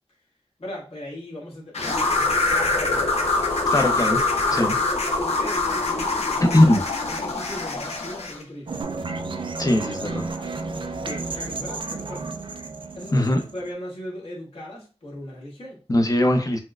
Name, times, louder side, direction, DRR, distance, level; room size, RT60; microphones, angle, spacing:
voice 1, 0.6-3.1 4.4-4.9 5.2-8.8 9.9-10.5 11.0-12.3 12.9-15.8, left 1 dB, 65° left, 1.5 m, -38 dB
sound 1, 1.7-8.4, left 3 dB, 85° left, 0.7 m, -24 dB
voice 2, 3.7-4.2 4.6-4.7 6.4-6.8 9.6-10.3 13.1-13.4 15.9-16.6, left 1 dB, 35° left, 0.6 m, -19 dB
sound 2, 8.7-13.7, right 3 dB, 55° right, 0.3 m, -32 dB
4.3 x 2.1 x 2.4 m
wide cardioid pair, 75°, 11 cm